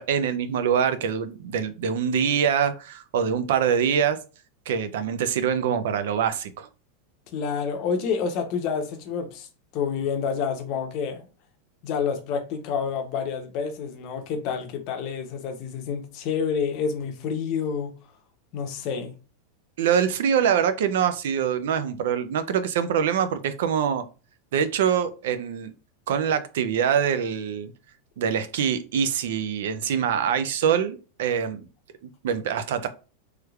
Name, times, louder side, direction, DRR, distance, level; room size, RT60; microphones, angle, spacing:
voice 1, 0.0-4.2 4.7-6.7 19.8-24.0 24.5-25.7 26.1-27.7 28.2-31.7 32.2-32.9, right 8 dB, 70° right, 0.4 m, -24 dB
voice 2, 7.3-9.5 9.7-11.3 11.8-18.0 18.5-19.2, left 6 dB, 40° left, 0.7 m, -28 dB
3.2 x 3.1 x 2.3 m
supercardioid pair, 160°, 0 cm